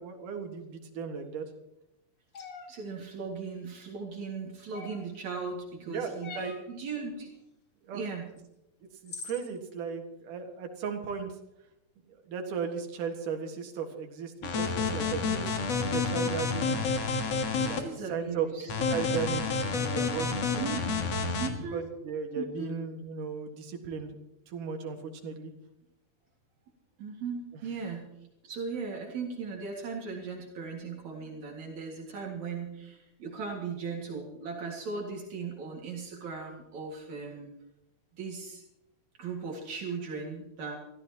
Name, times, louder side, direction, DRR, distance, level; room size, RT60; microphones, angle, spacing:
voice 1, 0.0-1.4 5.9-6.5 7.8-8.0 9.0-11.4 12.1-16.9 17.6-20.4 21.7-24.2 24.5-25.5, right 6 dB, 90° right, 4 dB, 3.3 m, -36 dB
sound 1, 2.3-2.7 4.7-5.2 6.2-6.7 8.4-8.5 9.1-9.5, left 5 dB, 40° left, 2.7 m, -42 dB
voice 2, 2.7-7.3 7.9-8.3 17.6-18.7 20.5-21.1 21.4-21.9 22.4-22.7 27.0-28.1 28.4-37.5 38.2-38.6 39.2-40.8, right 5 dB, 65° right, 0 dB, 3.3 m, -38 dB
sound 2, 14.4-17.8 18.7-21.5, left 4 dB, 55° left, 2.5 m, -29 dB
25.0 x 14.5 x 2.9 m, 0.87 s
omnidirectional pair, 3.6 m